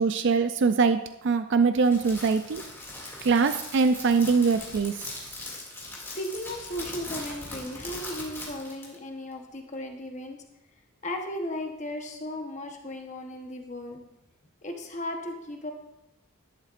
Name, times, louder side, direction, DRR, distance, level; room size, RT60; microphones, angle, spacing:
voice 1, 0.0-2.6 3.2-5.1, right 5 dB, 60° right, 9 dB, 0.4 m, -23 dB
Crackle, 1.8-9.0, left 2 dB, 10° left, 2.4 m, -40 dB
voice 2, 6.1-10.4 11.0-14.2 14.6-15.7, left 1 dB, 35° left, 3 dB, 1.1 m, -36 dB
11.5 x 11.0 x 2.5 m, 0.92 s
head